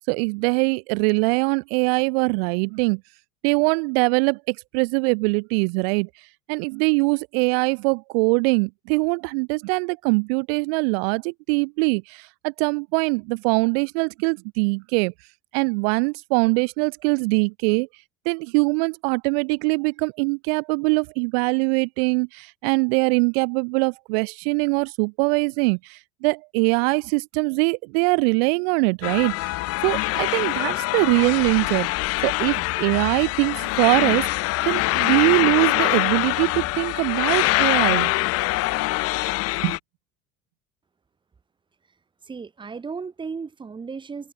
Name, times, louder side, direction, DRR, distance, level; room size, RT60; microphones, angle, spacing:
voice 1, 0.1-3.0 3.4-6.1 6.5-15.1 15.5-17.9 18.3-29.5 29.8-34.3 34.7-38.1 39.6-39.8, right 33 dB, 85° right, 1.7 m, -22 dB
sound 1, 29.0-39.8, left 20 dB, 50° left, 3.6 m, -24 dB
voice 2, 42.2-44.3, right 5 dB, 15° right, 6.6 m, -35 dB
cardioid pair, 170°, 30 cm